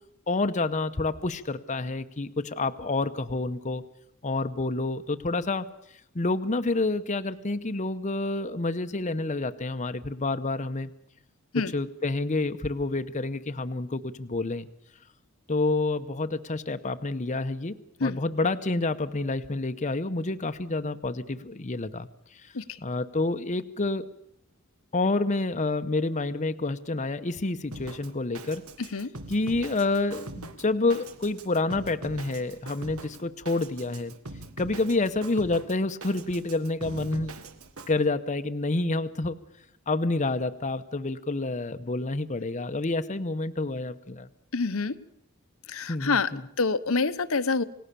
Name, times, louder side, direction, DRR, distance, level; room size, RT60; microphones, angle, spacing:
voice 1, 0.3-3.8 4.2-5.7 6.1-10.9 11.7-14.7 15.5-22.5 22.8-24.1 24.9-28.6 29.3-34.1 34.6-37.3 37.9-39.4 39.9-44.3 45.9-46.4, left 2 dB, 35° left, 9 dB, 0.8 m, -28 dB
Drum kit, 27.7-37.9, right 2 dB, 80° right, 1.7 m, -43 dB
voice 2, 28.8-29.1 44.5-44.9 45.7-46.3 46.6-47.6, left 4 dB, 70° left, 11 dB, 1.0 m, -26 dB
29.0 x 17.5 x 6.9 m, 0.76 s
head